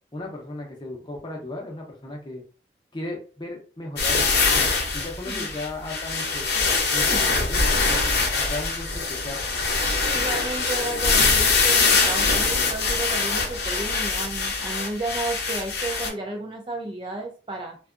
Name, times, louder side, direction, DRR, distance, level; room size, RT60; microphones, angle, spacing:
voice 1, 0.1-2.4 2.9-8.1 8.4-9.6, left 2 dB, 25° left, 0 dB, 0.6 m, -36 dB
sound 1, 4.0-16.1, left 4 dB, 60° left, 0.6 m, -23 dB
voice 2, 10.0-17.8, right 2 dB, 30° right, 3 dB, 0.4 m, -32 dB
2.6 x 2.3 x 2.4 m, 0.38 s
head